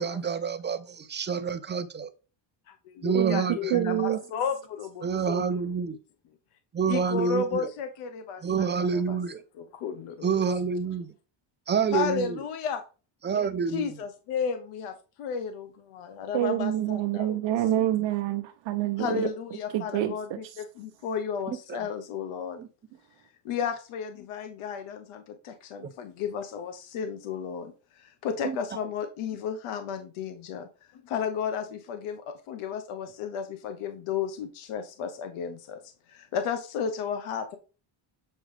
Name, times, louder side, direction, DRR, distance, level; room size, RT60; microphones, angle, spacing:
voice 1, 0.0-2.1 3.0-4.2 5.0-6.0 6.7-7.7 8.4-9.4 10.2-11.1 11.7-12.4 13.2-14.0 21.5-21.8 22.6-22.7 25.8-25.9 28.4-28.9, right 6 dB, 20° right, 0.5 m, -28 dB
voice 2, 2.8-5.6 6.9-9.2 9.6-10.3 11.9-12.8 13.3-13.5 13.7-17.5 19.0-22.6 23.4-35.8 36.1-37.6, left 7 dB, 90° left, 1.1 m, -33 dB
voice 3, 3.7-4.2 16.3-19.3 19.7-20.6, right 13 dB, 65° right, 0.7 m, -27 dB
7.7 x 4.9 x 3.3 m
cardioid pair, 130°, 49 cm